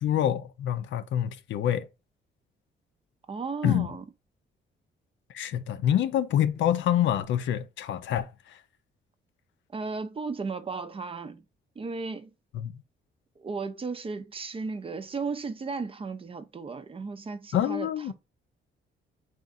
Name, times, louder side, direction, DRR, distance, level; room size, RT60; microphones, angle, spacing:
voice 1, 0.0-1.9 3.6-3.9 5.3-8.6 12.5-12.8 17.5-18.1, left 10 dB, 70° left, 0.5 m, -26 dB
voice 2, 3.3-4.0 9.7-11.4 11.8-12.3 13.4-18.1, right 4 dB, 30° right, 0.5 m, -35 dB
4.1 x 2.5 x 3.6 m
cardioid pair, 90°, 20 cm